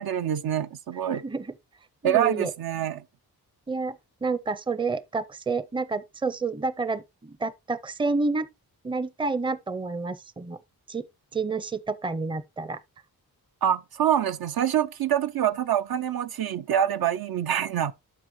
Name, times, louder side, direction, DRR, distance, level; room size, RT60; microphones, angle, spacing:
voice 1, 0.0-1.2 2.0-3.0 13.6-17.9, right 10 dB, 70° right, 0.6 m, -25 dB
voice 2, 1.1-1.5 2.0-2.5 3.7-4.0 4.2-8.5 8.8-10.6 10.9-11.0 11.3-12.8, right 4 dB, 15° right, 0.5 m, -29 dB
12.5 x 4.8 x 3.0 m
cardioid pair, 70°, 38 cm